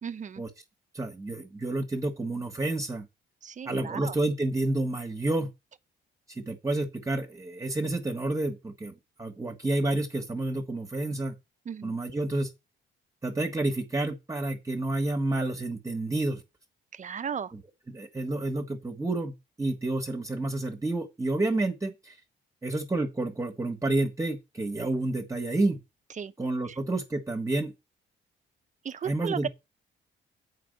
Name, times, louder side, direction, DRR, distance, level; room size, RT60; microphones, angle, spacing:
voice 1, 0.0-0.4 3.4-4.2 11.6-12.0 16.9-17.5 26.2-26.3 26.6-26.8 28.8-29.5, right 7 dB, 40° right, 0.8 m, -35 dB
voice 2, 0.9-3.1 3.6-5.5 6.3-11.3 11.8-12.5 13.2-16.4 17.9-22.2 22.6-25.8 26.4-27.7 29.0-29.5, right 2 dB, 15° right, 1.5 m, -29 dB
7.7 x 4.8 x 6.5 m
cardioid pair, 90°, 20 cm